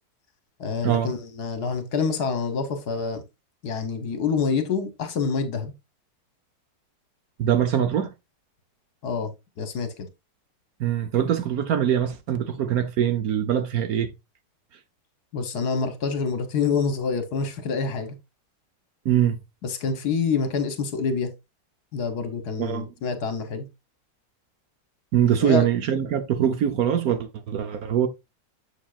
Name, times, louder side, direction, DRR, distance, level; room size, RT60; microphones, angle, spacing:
voice 1, 0.6-3.2 3.6-5.7 9.0-9.3 9.6-10.1 15.3-18.1 19.6-21.3 21.9-23.7 25.4-25.7, left 5 dB, 65° left, 1.6 m, -27 dB
voice 2, 7.4-8.1 10.8-14.1 19.0-19.4 22.6-22.9 25.1-28.1, right 10 dB, 65° right, 1.1 m, -23 dB
7.2 x 7.2 x 2.4 m
omnidirectional pair, 1.9 m